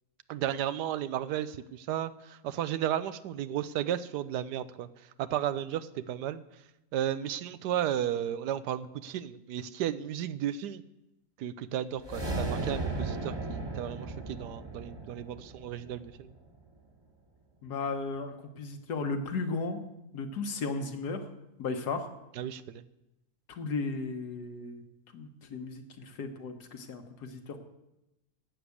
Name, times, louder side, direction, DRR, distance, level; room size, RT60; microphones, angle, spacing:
voice 1, 0.3-4.9 5.2-6.4 6.9-10.8 11.4-16.3 22.4-22.8, right 11 dB, 85° right, 14 dB, 1.2 m, -34 dB
sound 1, 12.0-16.4, right 2 dB, 15° right, 1.4 m, -36 dB
voice 2, 17.6-19.8 20.1-21.2 21.6-22.1 23.5-24.8 25.1-27.6, left 4 dB, 75° left, 6 dB, 1.8 m, -35 dB
11.0 x 8.1 x 8.4 m, 0.95 s
omnidirectional pair, 1.7 m